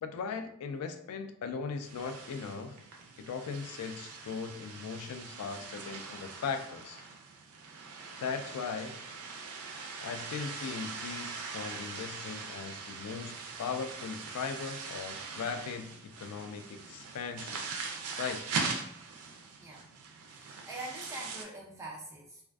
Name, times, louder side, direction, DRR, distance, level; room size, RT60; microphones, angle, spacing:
voice 1, 0.0-2.8 3.2-7.0 8.2-9.0 10.0-17.7 18.2-18.4, left 5 dB, 85° left, 12 dB, 0.3 m, -38 dB
sound 1, 1.8-21.4, right 4 dB, 85° right, 0.4 m, -41 dB
voice 2, 20.3-22.4, right 2 dB, 15° right, -3 dB, 0.4 m, -44 dB
2.4 x 2.3 x 2.2 m, 0.71 s
head